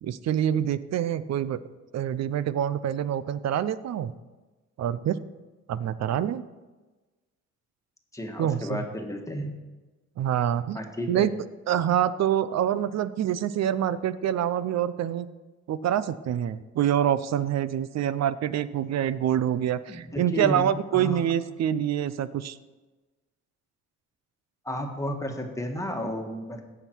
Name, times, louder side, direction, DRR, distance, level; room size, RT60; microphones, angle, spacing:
voice 1, 0.0-1.6 1.9-4.1 4.8-5.2 5.7-6.4 8.4-8.8 10.2-10.8 11.1-11.3 11.7-15.3 15.7-22.6, right 10 dB, 60° right, 16 dB, 0.6 m, -26 dB
voice 2, 8.1-9.5 10.7-11.3 19.9-21.3 24.6-26.6, equal, 10° left, 3 dB, 1.6 m, -32 dB
16.5 x 5.9 x 4.5 m, 1.2 s
cardioid pair, 90°, 30 cm